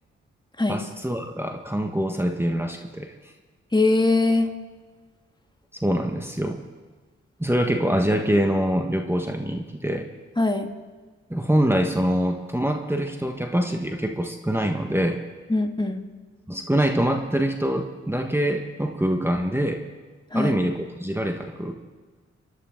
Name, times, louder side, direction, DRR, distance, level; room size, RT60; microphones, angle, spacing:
voice 1, 0.7-3.1 5.8-6.6 7.4-10.1 11.3-15.2 16.5-19.8 20.3-21.8, right 1 dB, 10° right, 4 dB, 1.5 m, -24 dB
voice 2, 3.7-4.5 10.4-10.7 15.5-16.0 20.3-20.6, left 2 dB, 15° left, 5 dB, 1.7 m, -21 dB
29.0 x 11.5 x 3.9 m, 1.4 s
supercardioid pair, 50°, 29 cm